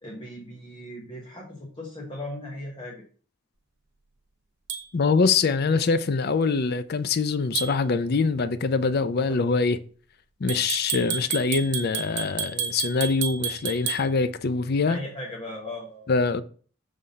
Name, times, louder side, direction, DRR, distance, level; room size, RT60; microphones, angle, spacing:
voice 1, 0.0-3.0 14.9-16.1, left 1 dB, 25° left, 1.0 m, -37 dB
sound 1, 4.7-4.8 7.6-7.8 10.5-14.0, right 7 dB, 55° right, 0.9 m, -30 dB
voice 2, 4.9-9.8 10.4-15.0 16.1-16.4, left 4 dB, 45° left, 0.4 m, -24 dB
5.6 x 3.4 x 5.2 m
head